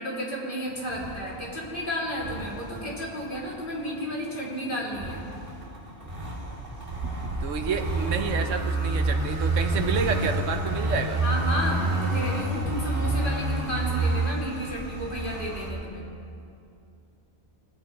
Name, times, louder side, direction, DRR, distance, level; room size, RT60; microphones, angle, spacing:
voice 1, 0.0-5.3 11.2-16.0, equal, 45° left, -5 dB, 2.8 m, -32 dB
sound 1, 0.7-15.7, right 2 dB, 50° right, 2.2 m, -29 dB
sound 2, 6.5-11.7, right 2 dB, 70° right, 1.7 m, -38 dB
voice 2, 7.4-11.2, right 5 dB, 90° right, 6 dB, 1.2 m, -29 dB
19.0 x 8.1 x 4.6 m, 2.5 s
omnidirectional pair, 1.3 m